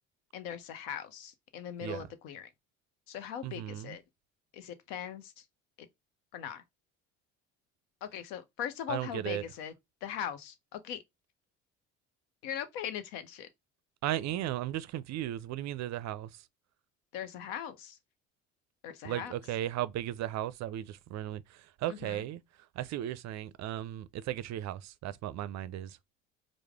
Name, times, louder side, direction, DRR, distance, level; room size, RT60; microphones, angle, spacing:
voice 1, 0.3-2.5 3.1-4.0 4.5-5.4 5.8-5.9 6.3-6.6 8.0-9.7 10.0-11.0 12.4-13.5 17.1-18.0 18.8-19.3 21.9-22.2, left 9 dB, 70° left, 0.8 m, -40 dB
voice 2, 3.4-4.0 8.9-9.4 14.0-16.5 19.0-22.4 22.8-26.0, right 13 dB, 50° right, 0.5 m, -36 dB
4.7 x 2.1 x 3.4 m
hypercardioid pair, 60°, 38 cm